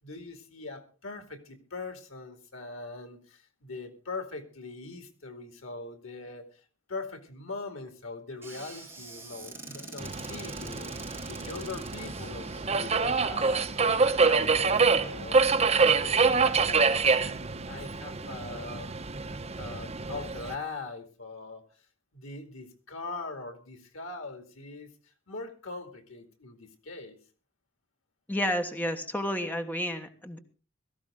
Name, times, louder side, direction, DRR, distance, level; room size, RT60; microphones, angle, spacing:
voice 1, 0.0-6.6 6.9-15.4 15.8-17.3 17.7-18.9 19.6-21.7 22.1-24.9 25.3-27.2, left 3 dB, 85° left, 7 dB, 2.5 m, -41 dB
Squeak / Cupboard open or close, 8.4-13.7, right 2 dB, 10° right, 7.8 m, -45 dB
Subway metro underground, 10.0-20.5, right 4 dB, 30° right, 1.1 m, -26 dB
voice 2, 28.3-30.4, equal, 10° left, 6 dB, 1.3 m, -31 dB
17.0 x 14.5 x 3.8 m, 0.36 s
head